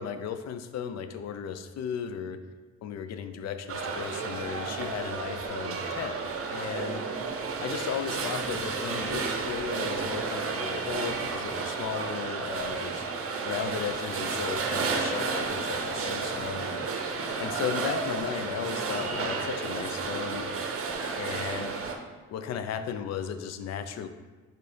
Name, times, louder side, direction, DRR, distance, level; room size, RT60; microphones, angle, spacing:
voice 1, 0.0-2.4 2.8-7.0 7.6-13.0 13.4-16.8 17.4-20.5 21.1-21.7 22.3-24.1, left 8 dB, 60° left, 9 dB, 0.4 m, -35 dB
sound 1, 3.7-22.0, right 4 dB, 50° right, 0.6 m, -32 dB
4.0 x 2.7 x 4.9 m, 1.3 s
cardioid pair, 90°, 30 cm